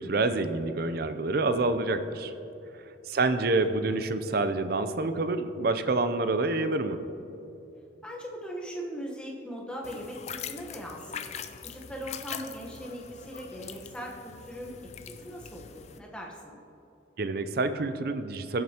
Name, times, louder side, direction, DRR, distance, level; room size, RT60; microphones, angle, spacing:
voice 1, 0.0-2.3 2.8-7.0 17.2-18.6, right 2 dB, 50° right, 10 dB, 0.5 m, -27 dB
voice 2, 8.0-11.3 11.6-14.9 15.2-16.6, equal, 5° left, -2 dB, 1.1 m, -40 dB
sound 1, 9.8-16.0, left 7 dB, 35° left, 0.3 m, -42 dB
15.5 x 7.5 x 2.9 m, 2.9 s
head